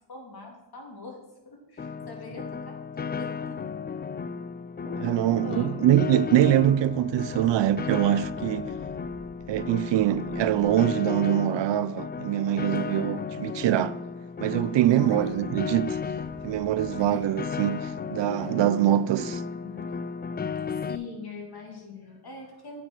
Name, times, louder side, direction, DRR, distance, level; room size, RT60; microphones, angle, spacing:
voice 1, 0.1-1.2 1.4-3.7 5.3-5.9 12.7-13.4 14.9-15.4 17.0-17.3 18.4-18.5 19.1-19.9 20.7-22.8, left 5 dB, 50° left, 3.0 m, -42 dB
Piano, 1.8-21.0, left 5 dB, 25° left, 0.4 m, -34 dB
sound 1, 4.8-10.9, left 5 dB, 80° left, 1.2 m, -45 dB
voice 2, 5.0-8.7 9.5-14.0 14.4-16.0 16.4-19.4, right 12 dB, 65° right, 0.5 m, -24 dB
sound 2, 14.6-19.2, right 1 dB, 10° right, 2.8 m, -53 dB
8.8 x 6.2 x 6.2 m
cardioid pair, 75°, 47 cm